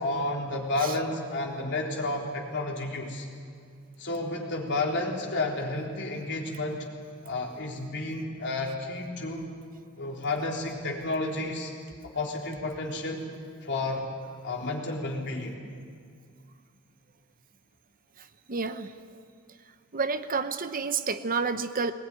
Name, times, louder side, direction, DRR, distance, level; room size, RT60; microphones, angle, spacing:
voice 1, 0.0-3.3 4.0-6.9 7.2-9.5 10.0-11.7 12.0-13.3 13.6-14.1 14.4-15.6, left 2 dB, 55° left, 0 dB, 3.8 m, -31 dB
voice 2, 18.2-18.9 19.9-21.9, right 4 dB, 40° right, 11 dB, 0.8 m, -30 dB
20.5 x 20.0 x 10.0 m, 2.3 s
head